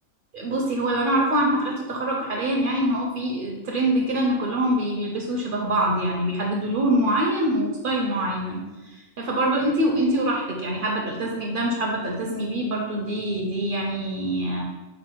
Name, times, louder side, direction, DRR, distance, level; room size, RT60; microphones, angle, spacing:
voice 1, 0.3-8.6 8.9-14.6, right 1 dB, 55° right, -1 dB, 0.6 m, -24 dB
5.0 x 2.0 x 4.4 m, 1.1 s
omnidirectional pair, 1.6 m